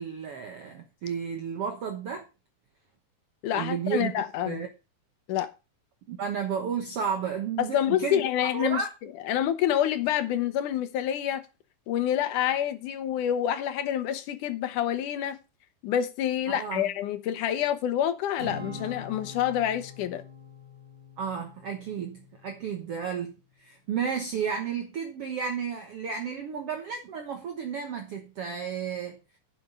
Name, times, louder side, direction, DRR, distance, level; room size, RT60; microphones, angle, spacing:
voice 1, 0.0-2.3 3.5-4.1 4.5-4.7 6.1-8.9 16.5-16.8 21.2-29.2, right 7 dB, 60° right, 1.7 m, -32 dB
voice 2, 3.4-4.6 5.3-5.5 7.6-8.8 9.2-11.4 11.9-15.4 15.8-20.2, left 11 dB, 75° left, 2.5 m, -27 dB
Acoustic guitar / Strum, 18.4-22.8, left 2 dB, 35° right, 2.5 m, -44 dB
11.0 x 6.9 x 5.4 m
omnidirectional pair, 3.9 m